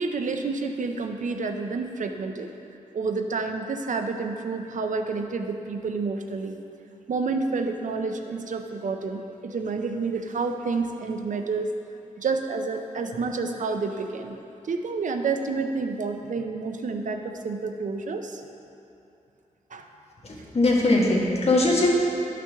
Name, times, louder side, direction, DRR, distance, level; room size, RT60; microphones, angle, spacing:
voice 1, 0.0-2.5 2.9-6.6 7.1-11.7 12.2-14.4 14.6-18.4 19.7-19.9, right 4 dB, 70° right, 5 dB, 0.6 m, -29 dB
voice 2, 20.2-21.9, left 2 dB, 50° left, -4 dB, 1.6 m, -21 dB
11.5 x 5.8 x 3.5 m, 2.8 s
wide cardioid pair, 85°, 14 cm